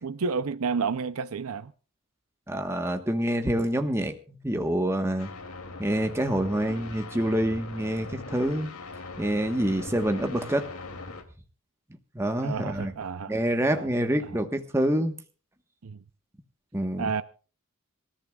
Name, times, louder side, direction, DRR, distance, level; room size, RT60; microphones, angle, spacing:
voice 1, 0.0-1.7 12.4-13.3 13.7-13.9 14.2-14.3 15.8-16.0 17.0-17.2, right 5 dB, 75° right, 0.6 m, -30 dB
voice 2, 2.5-5.3 5.8-8.7 9.2-10.7 12.1-12.9 13.3-15.2 16.7-17.1, right 1 dB, 10° right, 1.2 m, -27 dB
sound 1, 5.2-11.2, left 3 dB, 90° left, 2.7 m, -41 dB
26.5 x 14.5 x 2.4 m
head